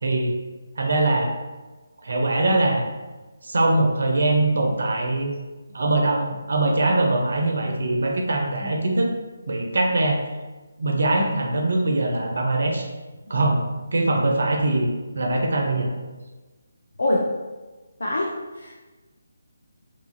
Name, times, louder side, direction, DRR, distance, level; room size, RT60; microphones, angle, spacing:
voice 1, 0.0-0.4 0.8-1.3 2.0-2.8 3.4-5.3 5.7-9.1 9.5-10.2 10.8-12.9 13.3-13.6 13.9-15.9, right 2 dB, 60° right, 1 dB, 0.4 m, -22 dB
voice 2, 18.0-18.3 18.6-18.7, left 1 dB, 60° left, -3 dB, 0.4 m, -24 dB
2.8 x 2.3 x 2.6 m, 1.2 s
figure-of-eight pair, 150°, 0 cm